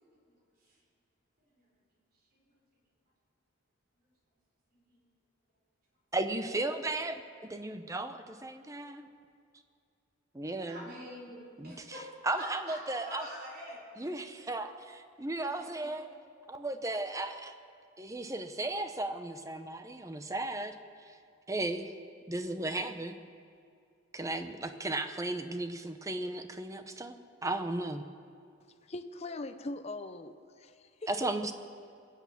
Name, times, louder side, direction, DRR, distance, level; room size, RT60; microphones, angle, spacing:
voice 1, 4.7-5.1 10.7-12.1 12.4-14.5 15.5-15.9, equal, 45° right, -3 dB, 4.3 m, -46 dB
voice 2, 6.1-9.1 10.3-10.8 11.6-13.3 14.0-16.1 16.5-17.6 18.0-20.7 21.1-21.2 21.5-21.9 22.3-23.2 24.1-27.2 27.4-28.0 31.1-31.5, right 2 dB, 15° right, 9 dB, 0.7 m, -35 dB
voice 3, 28.8-31.5, left 2 dB, 30° left, 9 dB, 0.6 m, -41 dB
21.0 x 8.5 x 7.1 m, 2.4 s
head